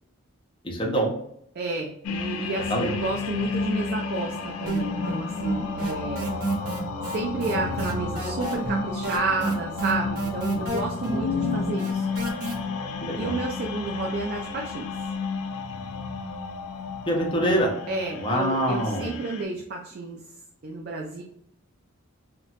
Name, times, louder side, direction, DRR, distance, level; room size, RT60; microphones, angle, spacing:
voice 1, 0.6-1.1 2.7-2.9 11.0-11.7 13.0-13.4 17.1-17.7 18.1-19.1, equal, 20° left, -1 dB, 0.5 m, -25 dB
voice 2, 1.6-6.4 7.0-12.1 13.2-14.9 17.9-20.2 20.6-21.2, right 3 dB, 45° right, 0 dB, 0.3 m, -31 dB
sound 1, 2.0-19.4, left 4 dB, 80° left, 0.4 m, -32 dB
sound 2, 4.7-5.2 5.4-12.5, right 2 dB, 80° right, 0.8 m, -29 dB
2.8 x 2.1 x 2.8 m, 0.73 s
head